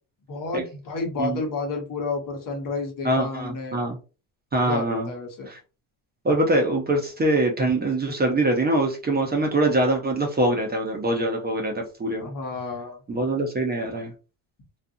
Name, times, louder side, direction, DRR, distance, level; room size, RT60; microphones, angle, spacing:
voice 1, 0.3-3.8 4.6-5.5 12.2-13.0, left 3 dB, 45° left, 3 dB, 1.1 m, -31 dB
voice 2, 3.0-4.0 4.5-5.1 5.5-5.6 6.2-12.3 13.1-14.1, right 1 dB, 20° right, 2 dB, 0.7 m, -23 dB
2.4 x 2.4 x 2.6 m, 0.33 s
supercardioid pair, 95°, 46 cm